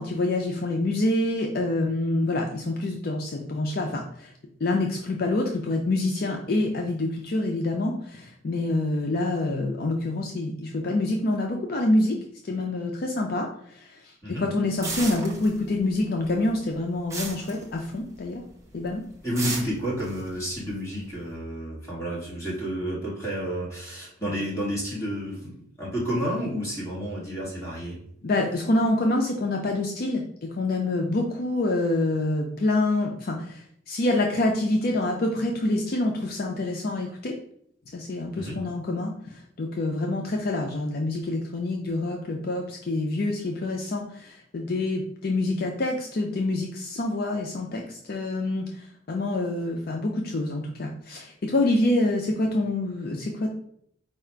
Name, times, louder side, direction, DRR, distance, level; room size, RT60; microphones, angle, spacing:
voice 1, 0.0-4.3 4.6-12.2 12.4-13.9 14.3-18.4 18.7-19.0 24.2-24.3 28.2-37.3 37.9-53.5, left 2 dB, 50° left, 1 dB, 0.5 m, -26 dB
sound 1, 14.8-16.0 16.2-18.3 18.6-18.9 19.4-21.3, right 3 dB, 15° right, 0.8 m, -34 dB
voice 2, 19.2-28.0 38.4-38.6, equal, 15° left, -6 dB, 1.7 m, -30 dB
4.8 x 2.4 x 4.4 m, 0.68 s
head